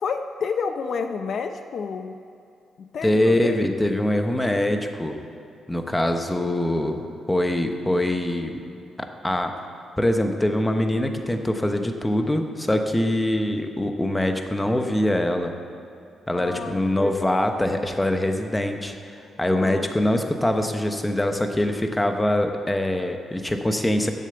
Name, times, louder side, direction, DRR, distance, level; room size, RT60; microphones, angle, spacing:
voice 1, 0.0-2.1 2.9-3.6 16.3-17.4 19.5-20.1, left 5 dB, 55° left, 7 dB, 0.6 m, -30 dB
voice 2, 3.0-5.2 5.7-7.0 7.3-8.6 9.2-9.5 10.0-15.5 16.3-18.9 19.4-24.1, left 1 dB, 10° left, 5 dB, 0.9 m, -23 dB
10.5 x 7.4 x 7.8 m, 2.5 s
cardioid pair, 120°, 0 cm